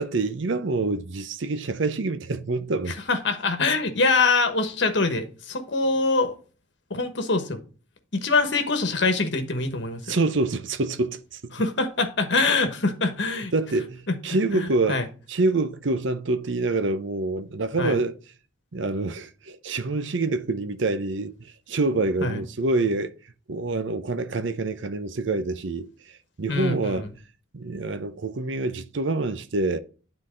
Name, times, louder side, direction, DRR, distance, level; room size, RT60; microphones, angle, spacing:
voice 1, 0.0-3.0 10.1-11.5 13.5-15.0 15.3-18.2 18.7-21.4 21.7-23.1 23.5-25.9 26.4-27.1 27.5-29.8, right 3 dB, 65° right, 0.7 m, -26 dB
voice 2, 2.9-6.4 6.9-7.6 8.1-10.1 11.5-13.5 14.5-15.1 17.8-18.0 22.2-22.4 26.5-27.1, left 3 dB, 60° left, 1.2 m, -24 dB
9.8 x 4.0 x 3.8 m
head